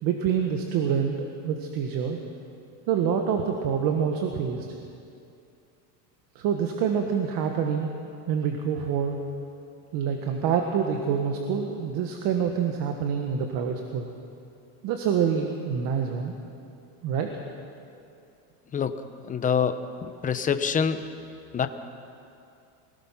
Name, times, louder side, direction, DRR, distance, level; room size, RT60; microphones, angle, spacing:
voice 1, 0.0-2.2 2.9-4.7 6.3-7.9 8.3-9.2 9.9-14.1 14.8-16.3 17.0-17.3, right 7 dB, 45° right, 3 dB, 1.7 m, -26 dB
voice 2, 19.3-21.0 21.5-21.7, left 7 dB, 15° left, 9 dB, 0.8 m, -26 dB
24.5 x 18.5 x 5.9 m, 2.6 s
supercardioid pair, 145°, 47 cm